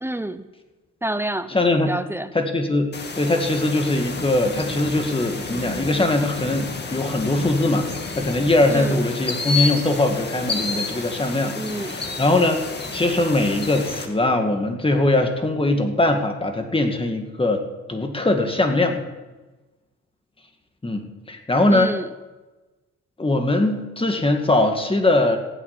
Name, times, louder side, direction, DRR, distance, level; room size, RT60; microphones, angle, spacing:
voice 1, 0.0-0.5 1.0-1.5 1.9-2.3 8.7-9.0 11.6-12.0 21.7-22.1, right 1 dB, 10° right, 13 dB, 0.7 m, -28 dB
voice 2, 1.5-1.9 2.3-7.9 8.2-17.6 17.9-19.0 20.8-21.9 23.2-25.4, left 2 dB, 20° left, 5 dB, 1.9 m, -21 dB
sound 1, 2.9-14.1, left 4 dB, 35° left, 2.0 m, -30 dB
16.0 x 6.0 x 9.5 m, 1.2 s
cardioid pair, 90°, 30 cm